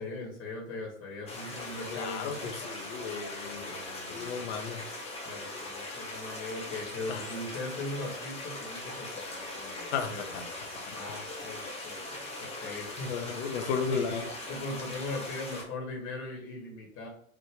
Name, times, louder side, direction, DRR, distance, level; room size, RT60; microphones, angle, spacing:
voice 1, 0.0-2.5 3.5-4.8 5.2-10.3 10.9-13.1 13.9-17.1, left 2 dB, 30° left, -2 dB, 1.3 m, -40 dB
sound 1, 1.3-15.6, left 2 dB, 15° left, 1.1 m, -40 dB
voice 2, 1.9-3.7 4.1-4.8 5.5-5.6 7.1-7.3 9.9-10.4 10.9-11.0 12.3-12.5 13.1-14.3, left 6 dB, 55° left, 6 dB, 0.8 m, -34 dB
4.6 x 2.5 x 3.6 m, 0.62 s
figure-of-eight pair, 95°, 41 cm